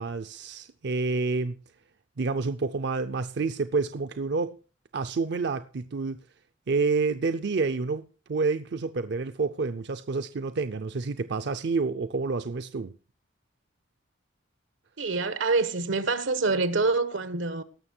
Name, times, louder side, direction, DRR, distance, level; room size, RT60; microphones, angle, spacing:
voice 1, 0.0-1.6 2.2-4.6 4.9-6.2 6.7-12.9, right 4 dB, 60° right, 0.5 m, -28 dB
voice 2, 15.0-17.6, right 3 dB, 85° right, 1.1 m, -26 dB
18.0 x 6.6 x 4.4 m
head